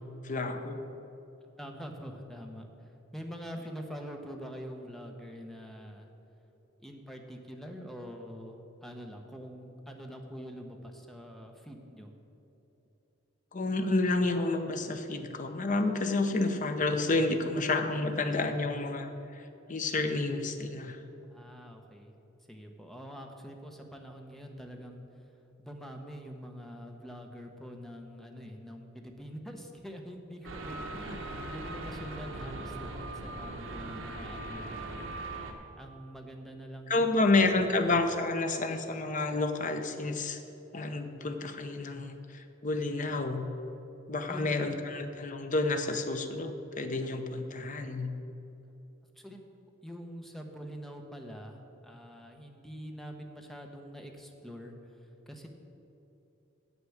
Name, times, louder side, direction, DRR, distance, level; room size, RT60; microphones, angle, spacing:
voice 1, 0.2-0.9 13.5-19.4 19.7-21.0 31.1-31.4 36.9-40.4 40.7-43.4 44.1-48.1, left 2 dB, 40° left, 6 dB, 0.7 m, -30 dB
voice 2, 1.6-6.1 6.8-12.1 21.3-22.1 22.5-25.0 25.6-35.0 35.6-37.6 44.3-44.7 49.2-49.4 49.8-54.7 55.3-55.5, equal, ahead, 3 dB, 0.9 m, -45 dB
sound 1, 30.4-35.5, right 2 dB, 70° right, 1.1 m, -40 dB
8.1 x 7.7 x 7.0 m, 3.0 s
head